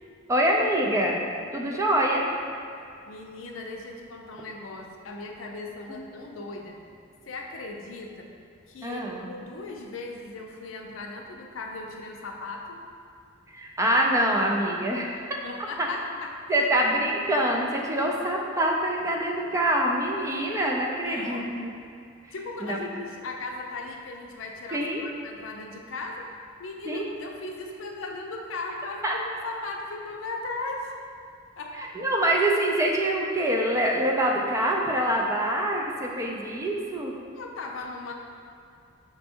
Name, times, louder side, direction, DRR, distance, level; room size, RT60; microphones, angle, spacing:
voice 1, 0.3-1.2 1.5-2.2 5.9-6.0 8.8-9.3 13.5-15.4 15.8-15.9 16.5-21.7 22.6-22.8 24.7-25.1 26.9-27.1 29.0-29.2 32.0-37.1, right 1 dB, 15° right, -1 dB, 0.4 m, -25 dB
voice 2, 3.1-6.8 7.3-8.3 8.7-12.8 15.4-16.7 21.0-21.5 22.3-30.9 31.6-31.9 37.3-38.1, left 3 dB, 75° left, 1 dB, 0.5 m, -37 dB
5.3 x 2.2 x 4.3 m, 2.5 s
head